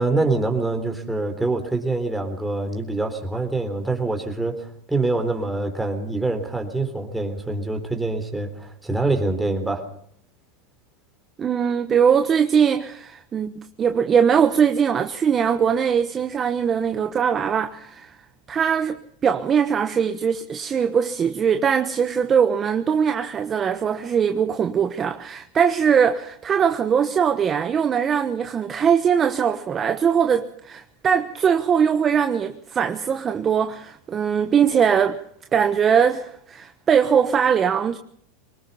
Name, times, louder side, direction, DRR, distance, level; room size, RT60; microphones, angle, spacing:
voice 1, 0.0-9.9, right 2 dB, 5° right, 3.8 m, -25 dB
voice 2, 11.4-18.1 18.5-19.0 19.2-35.2 35.5-38.0, right 7 dB, 25° right, 1.1 m, -21 dB
23.5 x 20.0 x 5.7 m
supercardioid pair, 120°, 0 cm